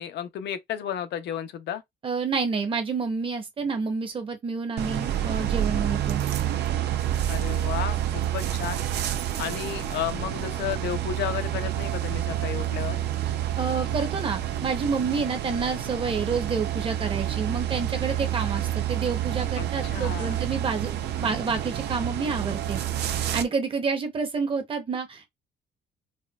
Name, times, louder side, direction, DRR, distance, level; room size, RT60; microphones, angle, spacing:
voice 1, 0.0-1.8 7.3-8.8 9.4-13.0 19.6-20.4, left 10 dB, 70° left, 0.5 m, -33 dB
voice 2, 2.0-6.2 13.6-22.8 23.2-25.3, right 5 dB, 30° right, 0.7 m, -29 dB
sound 1, 4.8-23.4, right 11 dB, 65° right, 0.5 m, -28 dB
4.3 x 2.2 x 2.3 m
cardioid pair, 170°, 19 cm